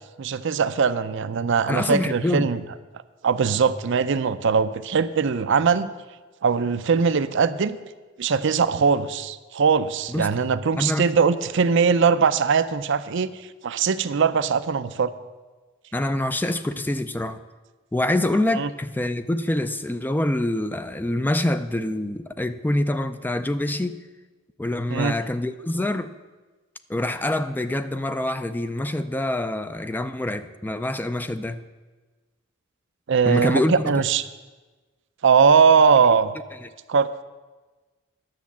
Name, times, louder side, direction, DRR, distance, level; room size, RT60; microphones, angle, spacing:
voice 1, 0.2-2.6 3.2-5.9 6.4-7.8 8.2-13.3 13.6-15.1 18.6-18.7 24.9-25.1 33.1-34.3 35.2-36.3 36.9-37.1, right 5 dB, 65° right, 0.5 m, -20 dB
voice 2, 1.7-2.5 10.1-10.3 10.8-11.1 15.9-17.4 17.9-24.0 24.6-26.1 26.9-31.6 33.3-34.0 36.6-36.7, left 1 dB, 10° left, 0.4 m, -25 dB
10.5 x 7.2 x 7.2 m
head